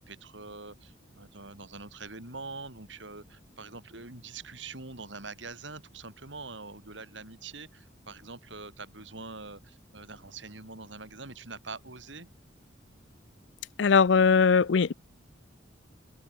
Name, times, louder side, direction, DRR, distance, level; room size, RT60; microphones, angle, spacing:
voice 1, 0.1-12.3, right 3 dB, 75° right, 5.2 m, -44 dB
voice 2, 13.8-14.9, left 5 dB, 70° left, 0.5 m, -20 dB
head